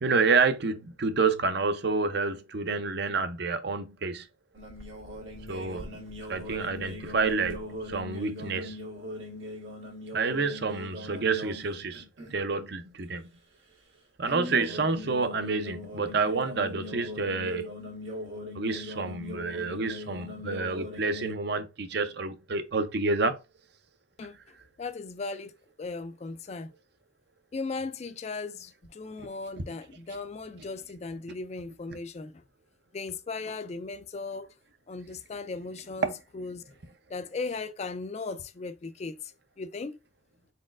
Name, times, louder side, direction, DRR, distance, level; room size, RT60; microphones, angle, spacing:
voice 1, 0.0-4.3 5.5-6.0 6.3-8.8 10.1-12.0 12.3-13.3 14.2-17.7 18.5-23.4 36.0-36.1, right 4 dB, 55° right, 0.6 m, -28 dB
sound 1, 4.5-11.6 11.9-12.4 14.3-21.3, left 1 dB, 75° right, 1.4 m, -40 dB
voice 2, 24.8-25.5 25.8-26.7 27.5-32.4 32.9-34.5 34.9-36.7 37.1-39.3 39.6-39.9, left 3 dB, 35° left, 0.3 m, -37 dB
4.2 x 4.1 x 2.4 m
head